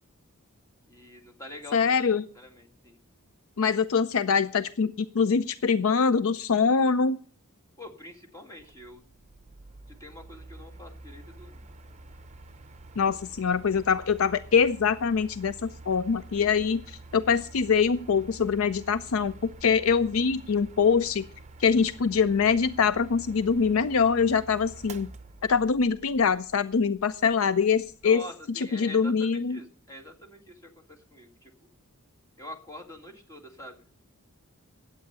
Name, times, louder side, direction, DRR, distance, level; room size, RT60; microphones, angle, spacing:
voice 1, 0.9-1.9 2.3-3.0 7.8-9.1 10.0-11.6 28.0-31.7 32.4-33.8, left 1 dB, 15° left, 2 dB, 2.0 m, -45 dB
voice 2, 1.7-2.3 3.6-7.2 13.0-21.2 21.6-25.1 25.5-28.2 28.6-29.6, left 5 dB, 65° left, 15 dB, 0.5 m, -24 dB
Mechanical fan, 8.6-28.2, right 2 dB, 30° right, 0.8 m, -48 dB
11.5 x 8.5 x 6.7 m, 0.43 s
head